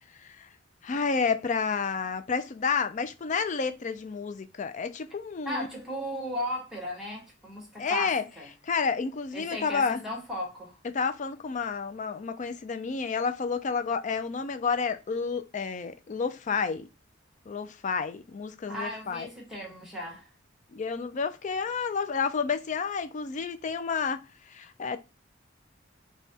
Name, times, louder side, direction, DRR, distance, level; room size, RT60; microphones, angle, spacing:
voice 1, 0.8-5.7 7.8-8.3 8.6-10.0 10.9-16.9 17.5-19.3 20.7-24.2 24.5-25.0, left 5 dB, 35° left, 0.4 m, -30 dB
voice 2, 5.4-8.5 9.3-10.8 18.7-20.3, left 1 dB, ahead, 1.3 m, -36 dB
5.2 x 2.2 x 2.8 m
head